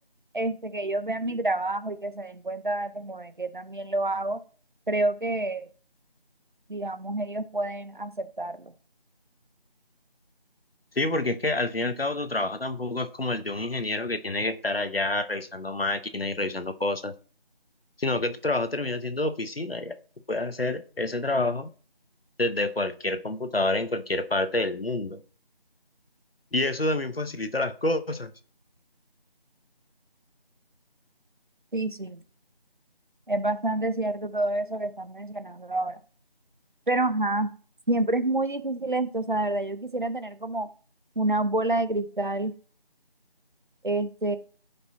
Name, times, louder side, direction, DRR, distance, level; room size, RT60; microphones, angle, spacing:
voice 1, 0.3-4.4 4.9-5.7 6.7-8.7 31.7-32.2 33.3-36.0 36.9-37.5 37.9-40.7 41.2-42.5 43.8-44.4, right 2 dB, 55° right, 11 dB, 1.0 m, -28 dB
voice 2, 10.9-17.1 18.0-20.0 20.3-21.7 22.4-25.2 26.5-28.3, left 2 dB, 75° left, 9 dB, 1.1 m, -28 dB
14.5 x 5.4 x 2.8 m, 0.40 s
figure-of-eight pair, 170°, 30 cm